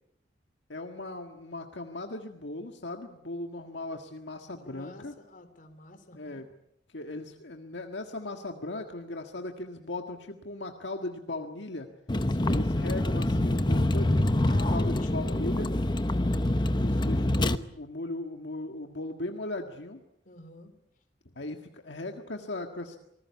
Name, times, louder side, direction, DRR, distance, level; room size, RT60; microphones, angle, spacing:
voice 1, 0.7-5.1 6.1-6.4 6.9-11.9 12.5-15.7 16.7-20.0 21.3-23.0, left 2 dB, 70° left, 4 dB, 1.7 m, -38 dB
voice 2, 4.6-6.4 12.3-12.6 14.4-16.2 20.2-20.7, left 2 dB, 50° left, 8 dB, 3.3 m, -45 dB
Vehicle, 12.1-17.6, left 1 dB, 25° left, 1.0 m, -26 dB
26.5 x 19.5 x 8.4 m, 0.81 s
head